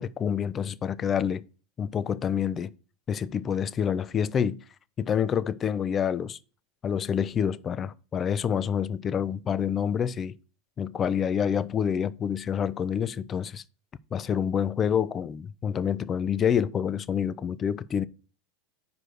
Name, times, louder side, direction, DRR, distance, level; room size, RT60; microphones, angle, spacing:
voice 1, 0.0-1.4 1.8-2.7 3.1-4.6 5.0-6.4 6.8-10.3 10.8-13.6 14.1-18.0, left 8 dB, 30° left, 0.4 m, -27 dB
5.0 x 4.8 x 6.1 m
hypercardioid pair, 110°, 0 cm